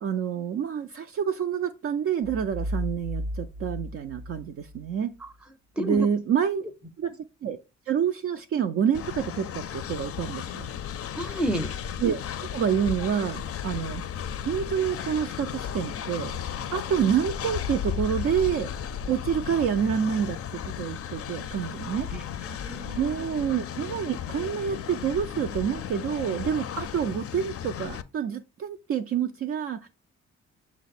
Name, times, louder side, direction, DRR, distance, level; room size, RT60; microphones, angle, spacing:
voice 1, 0.0-5.1 5.8-6.6 7.0-7.6 7.9-10.7 12.0-12.2 12.5-14.0 14.4-16.3 16.7-18.7 19.1-20.4 20.8-22.1 22.9-29.9, right 8 dB, 45° right, 0.4 m, -27 dB
sound 1, 2.2-4.9, equal, 85° right, 0.7 m, -34 dB
voice 2, 5.8-6.1 11.2-11.7 22.1-23.2, equal, 5° right, 0.6 m, -31 dB
Train, 8.9-28.0, left 9 dB, 50° left, 0.5 m, -35 dB
6.1 x 2.0 x 4.2 m
supercardioid pair, 50°, 31 cm